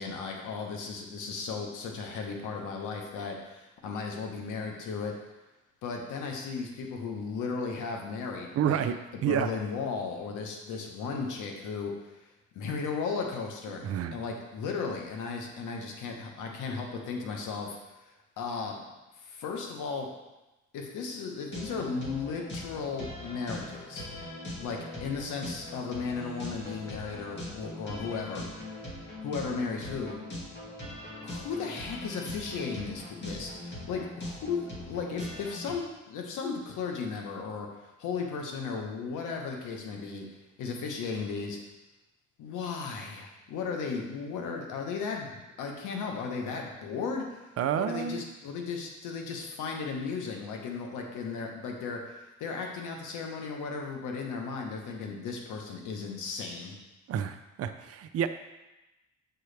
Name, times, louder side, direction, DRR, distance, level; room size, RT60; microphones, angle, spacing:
voice 1, 0.0-5.1 5.8-8.8 9.3-12.3 12.5-18.1 18.4-18.9 19.2-20.1 20.7-24.1 24.6-28.9 29.2-30.2 31.2-40.2 40.6-41.6 42.4-56.7, left 5 dB, 85° left, 1 dB, 1.1 m, -35 dB
voice 2, 8.6-8.9 9.2-9.5 13.8-14.2 47.6-48.2 57.1-58.3, right 9 dB, 50° right, 9 dB, 0.5 m, -29 dB
sound 1, 21.5-35.7, left 1 dB, 35° left, 2.2 m, -41 dB
7.6 x 4.6 x 3.3 m, 1.0 s
cardioid pair, 90°, 30 cm